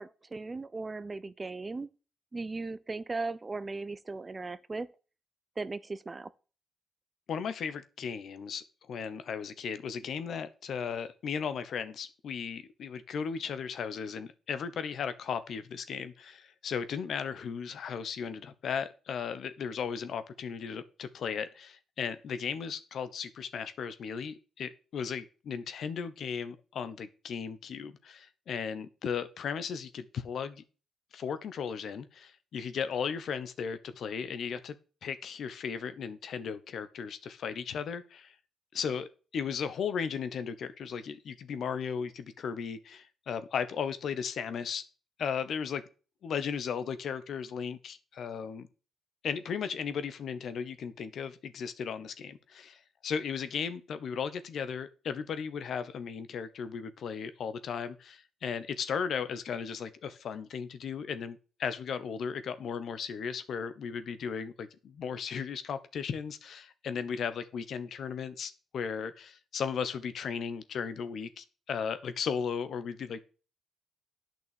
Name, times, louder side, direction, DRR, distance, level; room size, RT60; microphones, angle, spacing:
voice 1, 0.0-1.9 2.3-4.9 5.6-6.3, right 3 dB, 30° right, 0.6 m, -37 dB
voice 2, 7.3-30.6 31.1-34.7 35.0-38.3 38.7-44.8 45.2-45.8 46.2-48.7 49.2-73.2, left 6 dB, 65° left, 1.0 m, -36 dB
8.3 x 6.1 x 6.9 m
cardioid pair, 75°, 0 cm